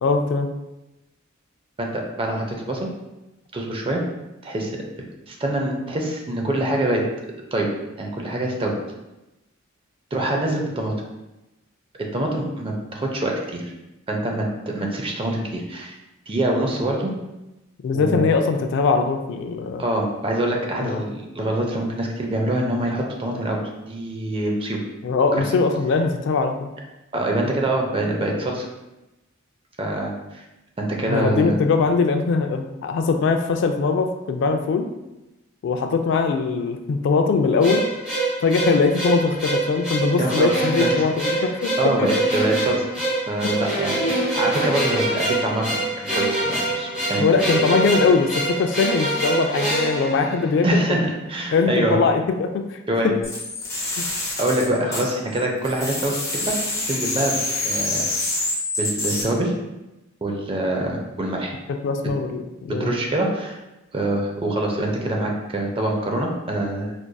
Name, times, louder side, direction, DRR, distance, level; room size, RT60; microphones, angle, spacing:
voice 1, 0.0-0.5 17.8-19.8 20.8-21.0 25.0-26.7 31.1-34.9 35.6-37.9 38.4-42.1 47.2-51.0 51.5-52.8 53.0-53.1 54.0-54.1 61.7-62.9, left 4 dB, 60° left, 6 dB, 0.3 m, -21 dB
voice 2, 1.8-2.9 3.5-4.0 4.4-4.7 5.3-7.0 7.5-7.7 8.0-8.7 10.1-10.9 12.1-13.6 14.1-15.9 16.3-17.1 17.9-18.3 19.8-23.6 23.9-24.8 25.3-25.4 27.1-28.7 29.8-30.4 30.8-31.6 40.2-41.4 41.8-42.9 43.3-47.2 50.6-52.0 52.9-53.1 54.4-56.5 56.9-57.3 57.6-58.1 58.8-59.5 60.2-61.5 62.7-63.6 63.9-66.9, right 1 dB, 25° right, 0 dB, 0.5 m, -25 dB
sound 1, 37.6-50.9, right 2 dB, 5° right, 1.0 m, -25 dB
sound 2, 53.2-55.4 55.6-59.2, left 2 dB, 15° left, 0.7 m, -26 dB
4.5 x 2.5 x 2.2 m, 0.99 s
head